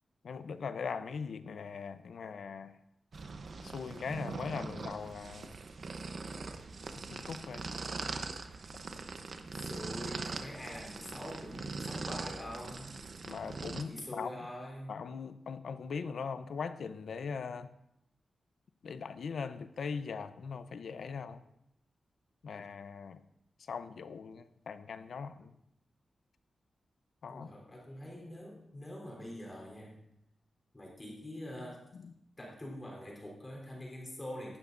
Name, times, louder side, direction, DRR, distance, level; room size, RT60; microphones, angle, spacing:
voice 1, 0.2-2.7 3.6-5.5 7.1-7.7 13.2-14.5 14.9-17.7 18.8-21.4 22.4-23.2 23.7-25.5 27.2-27.5 31.9-32.1, left 5 dB, 75° left, 11 dB, 0.7 m, -40 dB
sound 1, 3.1-13.8, right 4 dB, 50° right, 0.8 m, -42 dB
voice 2, 9.5-13.0 13.8-15.0 27.3-30.0 30.7-31.9 32.4-34.6, left 1 dB, 20° left, -2 dB, 3.6 m, -44 dB
16.5 x 12.5 x 2.6 m, 0.79 s
wide cardioid pair, 165°, 0 cm